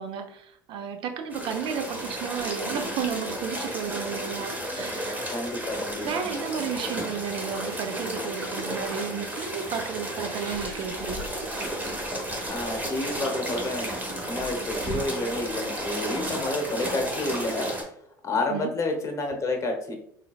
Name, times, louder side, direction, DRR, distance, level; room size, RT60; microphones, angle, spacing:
voice 1, 0.0-5.2 6.0-11.2 18.5-18.7, right 7 dB, 50° right, 7 dB, 0.6 m, -33 dB
sound 1, 1.3-17.8, right 1 dB, 15° right, 1.1 m, -33 dB
voice 2, 5.3-6.4 12.4-13.9 14.2-17.7 18.2-19.9, left 2 dB, 30° left, 4 dB, 0.9 m, -30 dB
sound 2, 10.3-11.1 12.2-12.5, right 2 dB, 80° right, 1.1 m, -44 dB
3.8 x 3.3 x 2.3 m, 0.69 s
hypercardioid pair, 70°, 11 cm